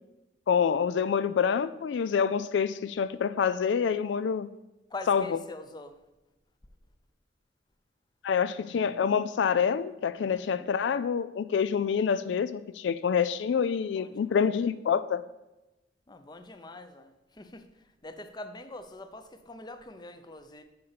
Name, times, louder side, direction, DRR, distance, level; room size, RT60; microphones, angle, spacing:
voice 1, 0.5-4.5 5.1-5.4 8.2-15.2, left 7 dB, 80° left, 14 dB, 0.3 m, -27 dB
voice 2, 4.9-5.9 10.3-10.7 14.0-14.4 16.1-17.6 18.0-20.6, left 2 dB, 25° left, 9 dB, 0.6 m, -44 dB
6.8 x 5.5 x 6.8 m, 0.99 s
head